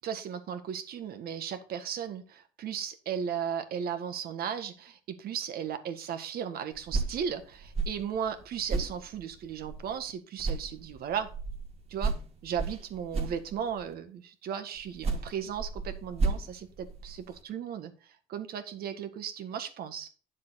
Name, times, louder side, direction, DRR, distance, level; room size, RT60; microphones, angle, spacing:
voice 1, 0.0-11.3 11.9-12.1 12.4-17.9 18.3-20.1, right 8 dB, 65° right, 9 dB, 1.6 m, -36 dB
sound 1, 6.7-10.1 10.4-13.9 14.8-17.4, right 3 dB, 35° right, 2.1 m, -34 dB
10.0 x 7.4 x 4.1 m, 0.37 s
cardioid pair, 110°, 17 cm